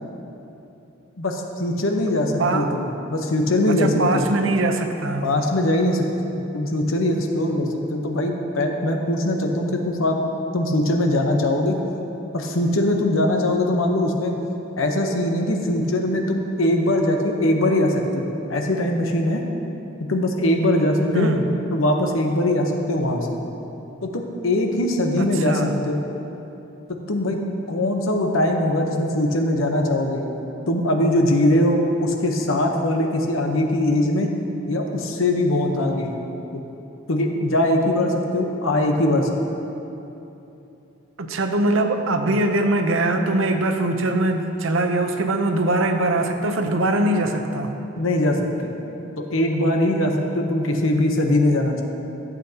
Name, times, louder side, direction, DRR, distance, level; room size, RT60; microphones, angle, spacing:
voice 1, 1.2-4.2 5.2-6.0 6.3-10.1 10.5-11.8 12.3-14.3 14.8-19.4 20.1-21.3 21.7-23.3 24.0-26.0 26.9-27.4 27.7-30.3 30.7-34.3 34.7-36.1 36.5-36.6 37.1-39.3 47.9-48.7 49.2-51.8, left 1 dB, 85° left, 2 dB, 1.0 m, -21 dB
voice 2, 2.4-2.8 3.8-5.3 21.1-21.4 25.2-25.7 41.2-47.7, right 2 dB, 75° right, 6 dB, 0.7 m, -22 dB
14.5 x 8.3 x 2.9 m, 3.0 s
head